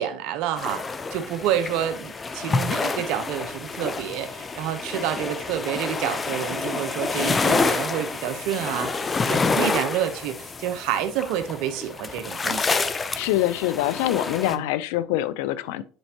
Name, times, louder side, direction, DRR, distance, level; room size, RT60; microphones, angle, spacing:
voice 1, 0.0-12.8 14.5-14.7, right 10 dB, 75° right, 0.8 m, -29 dB
sound 1, 0.6-14.6, left 4 dB, 25° left, 0.6 m, -28 dB
voice 2, 13.2-15.8, left 14 dB, 85° left, 0.4 m, -24 dB
8.0 x 4.4 x 2.9 m
supercardioid pair, 90°, 0 cm